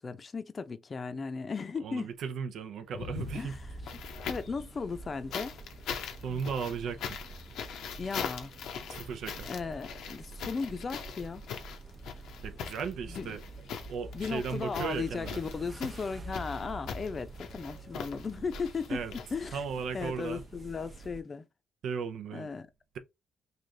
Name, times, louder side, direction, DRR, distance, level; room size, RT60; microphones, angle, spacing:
voice 1, 0.0-2.1 3.3-3.6 4.3-5.6 8.0-8.5 9.5-11.4 13.1-13.3 14.1-19.0 19.3-19.6 19.9-21.4 22.3-22.7, left 5 dB, 35° left, 0.6 m, -36 dB
voice 2, 1.8-3.5 6.2-7.2 8.9-9.5 12.4-13.4 13.9-15.4 18.9-19.1 19.5-20.4 21.8-22.5, right 6 dB, 75° right, 0.6 m, -36 dB
sound 1, 2.9-4.6 5.3-19.8 21.0-21.1, left 7 dB, 80° left, 0.7 m, -41 dB
sound 2, 3.1-21.2, right 2 dB, 35° right, 0.7 m, -47 dB
3.3 x 2.5 x 3.8 m
cardioid pair, 90°, 0 cm